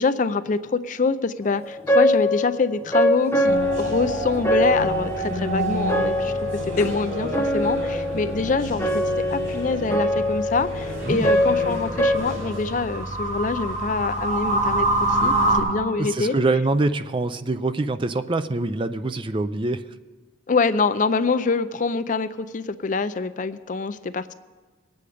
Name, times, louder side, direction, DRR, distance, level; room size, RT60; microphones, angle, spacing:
voice 1, 0.0-6.3 6.8-9.0 9.3-16.3 20.5-24.3, left 4 dB, 40° left, 12 dB, 0.4 m, -25 dB
sound 1, 1.5-12.1, left 1 dB, 10° left, 0.9 m, -24 dB
sound 2, 3.4-15.6, right 1 dB, 85° right, 5.8 m, -27 dB
voice 2, 16.0-19.8, right 2 dB, 25° right, 11 dB, 0.4 m, -24 dB
21.5 x 8.5 x 5.0 m, 1.4 s
head